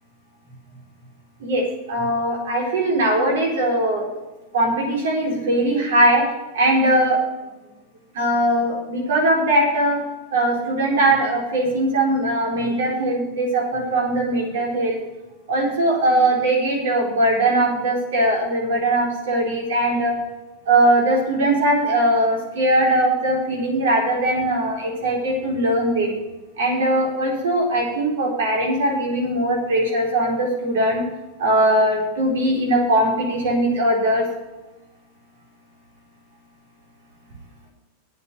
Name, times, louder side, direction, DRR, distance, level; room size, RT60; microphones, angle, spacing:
voice 1, 1.4-4.1 4.5-6.2 6.5-7.2 8.1-10.0 10.3-15.0 15.5-20.2 20.7-26.1 26.6-31.0 31.4-34.2, right 1 dB, 80° right, -1 dB, 4.5 m, -20 dB
8.9 x 7.9 x 8.3 m, 1.1 s
hypercardioid pair, 120°, 0 cm